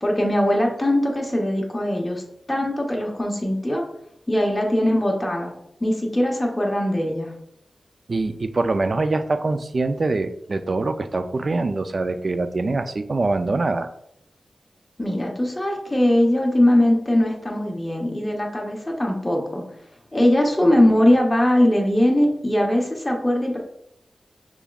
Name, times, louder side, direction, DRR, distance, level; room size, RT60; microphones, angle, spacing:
voice 1, 0.0-2.2 2.5-3.8 4.3-5.5 5.8-7.3 15.0-19.6 20.1-23.6, left 1 dB, 15° left, -1 dB, 0.9 m, -20 dB
voice 2, 8.1-13.9, right 3 dB, 40° right, 9 dB, 0.3 m, -24 dB
5.9 x 3.5 x 2.3 m, 0.75 s
wide cardioid pair, 140°, 0 cm